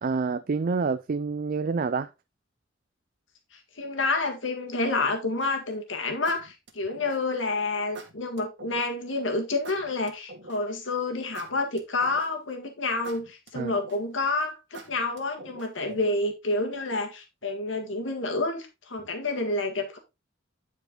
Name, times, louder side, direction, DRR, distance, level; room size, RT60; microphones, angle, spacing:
voice 1, 0.0-2.1 13.6-13.7 15.9-16.0, right 4 dB, 45° right, 0.4 m, -27 dB
voice 2, 3.8-20.0, left 3 dB, 90° left, 1.7 m, -29 dB
sound 1, 5.4-5.7 6.3-7.4 7.9-8.9 9.6-10.8 11.3-12.5 13.0-14.2 14.7-15.9, right 2 dB, 65° right, 1.8 m, -45 dB
10.0 x 4.6 x 3.7 m
head